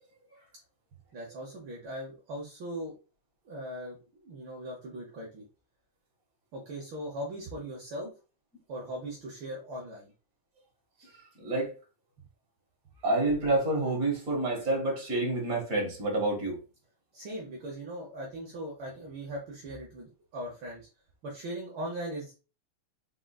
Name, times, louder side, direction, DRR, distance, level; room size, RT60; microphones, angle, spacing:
voice 1, 1.1-2.9 3.4-5.4 6.5-8.1 8.7-10.1 17.1-20.9 21.2-22.3, right 1 dB, 65° right, 1.2 m, -39 dB
voice 2, 11.4-11.7 13.0-16.6, right 2 dB, 35° right, 1.7 m, -28 dB
4.9 x 3.8 x 2.4 m
omnidirectional pair, 3.5 m